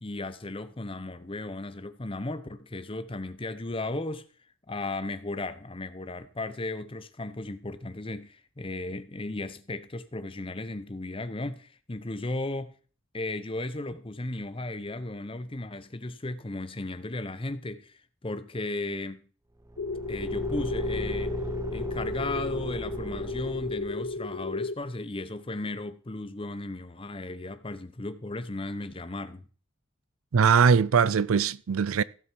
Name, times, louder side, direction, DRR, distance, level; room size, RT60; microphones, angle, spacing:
voice 1, 0.0-4.3 4.7-12.7 13.1-19.2 20.1-21.4 21.7-29.5, left 2 dB, 25° left, 0.8 m, -35 dB
Car / Engine, 19.6-24.2, right 1 dB, 15° right, 0.5 m, -37 dB
sound 1, 19.8-24.7, left 3 dB, 65° left, 0.7 m, -33 dB
voice 2, 30.3-32.0, right 6 dB, 85° right, 0.5 m, -21 dB
15.5 x 7.0 x 4.6 m
head